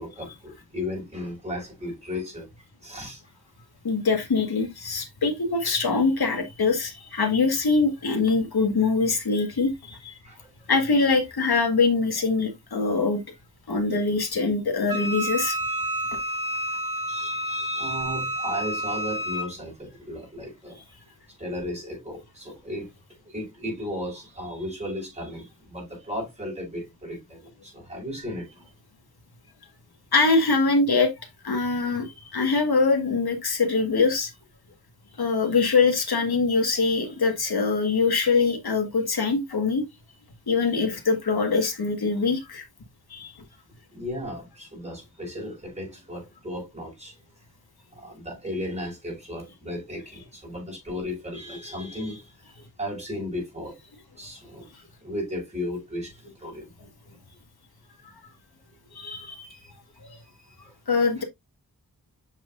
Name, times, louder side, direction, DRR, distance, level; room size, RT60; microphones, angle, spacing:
voice 1, 0.0-2.5 2.8-3.2 10.2-10.5 17.1-20.8 21.4-22.9 23.3-28.7 43.9-47.2 47.9-53.8 54.2-54.7 55.0-56.7 59.5-59.7 60.4-60.7 61.2-61.3, left 1 dB, 20° right, 5.2 m, -35 dB
voice 2, 3.8-10.1 10.7-13.2 13.7-15.6 20.8-20.9 30.1-34.3 35.2-39.8 40.5-42.6 43.1-43.3 58.9-59.5 60.1-60.2 60.9-61.2, left 4 dB, 85° left, 1.8 m, -23 dB
Wind instrument woodwind instrument, 14.9-19.5, right 1 dB, 60° right, 3.4 m, -29 dB
7.3 x 6.0 x 2.5 m
wide cardioid pair, 80°, 37 cm